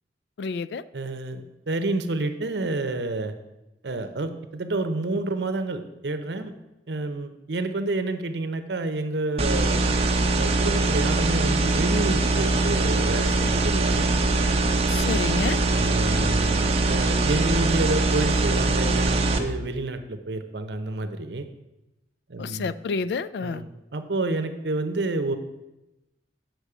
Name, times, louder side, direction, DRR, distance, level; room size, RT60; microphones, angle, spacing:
voice 1, 0.4-0.8 14.9-15.6 22.4-23.6, left 5 dB, 70° left, 17 dB, 0.3 m, -29 dB
voice 2, 0.9-3.3 3.8-6.5 6.9-9.8 10.4-14.1 15.7-21.4 22.3-22.7 23.4-25.4, right 2 dB, 75° right, 9 dB, 0.8 m, -29 dB
sound 1, 9.4-19.4, right 2 dB, 35° right, 0.7 m, -22 dB
8.2 x 6.2 x 4.9 m, 0.97 s
head